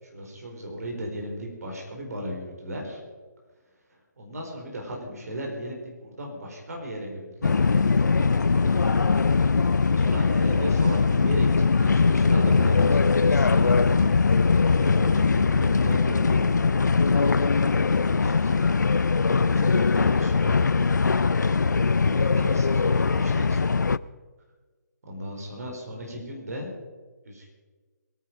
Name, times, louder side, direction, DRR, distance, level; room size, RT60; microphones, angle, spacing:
voice 1, 0.0-3.0 3.9-8.8 9.6-11.5 11.7-14.1 14.4-16.5 16.9-18.5 19.0-20.6 22.1-23.6 25.0-26.7 27.2-27.5, equal, 55° right, 0 dB, 4.8 m, -36 dB
sound 1, 7.4-24.0, left 4 dB, 70° left, 0.4 m, -21 dB
21.5 x 9.8 x 5.4 m, 1.4 s
figure-of-eight pair, 145°, 10 cm